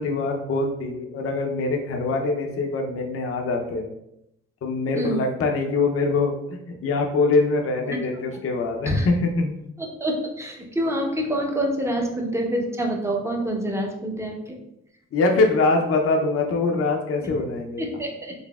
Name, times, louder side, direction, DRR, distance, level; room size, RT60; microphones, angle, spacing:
voice 1, 0.0-3.9 4.6-9.6 15.1-17.8, left 3 dB, 50° left, 2 dB, 0.6 m, -23 dB
voice 2, 9.8-14.6 17.8-18.3, equal, 10° right, 1 dB, 0.7 m, -26 dB
4.0 x 3.3 x 2.3 m, 0.81 s
cardioid pair, 90°, 30 cm